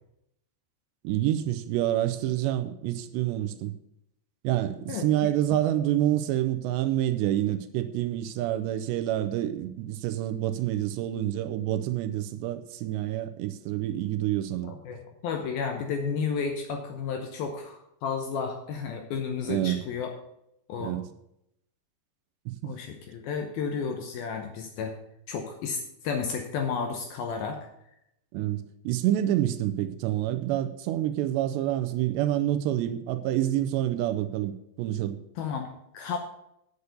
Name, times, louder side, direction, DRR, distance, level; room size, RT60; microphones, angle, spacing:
voice 1, 1.0-3.7 4.4-14.7 19.5-19.8 20.8-21.1 22.5-22.6 28.3-35.2, right 13 dB, 80° right, 9 dB, 2.7 m, -27 dB
voice 2, 14.6-20.1 20.7-21.0 22.6-25.0 25.3-25.8 26.0-27.7 35.4-35.7 35.9-36.2, left 6 dB, 75° left, 4 dB, 2.3 m, -32 dB
8.3 x 8.1 x 6.6 m, 0.79 s
omnidirectional pair, 5.2 m